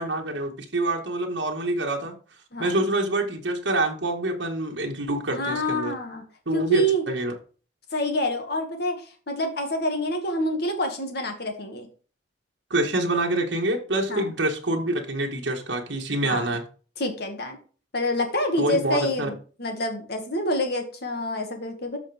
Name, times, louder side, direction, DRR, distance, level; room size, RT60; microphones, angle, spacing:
voice 1, 0.0-2.1 2.6-5.9 6.5-7.3 12.7-16.6 18.6-19.3, right 1 dB, 75° right, 0 dB, 1.7 m, -26 dB
voice 2, 5.3-6.2 6.5-7.0 7.9-11.9 14.1-14.3 16.2-16.6 17.0-17.6 17.9-22.0, equal, 60° left, 4 dB, 2.1 m, -27 dB
13.0 x 5.5 x 3.5 m, 0.39 s
head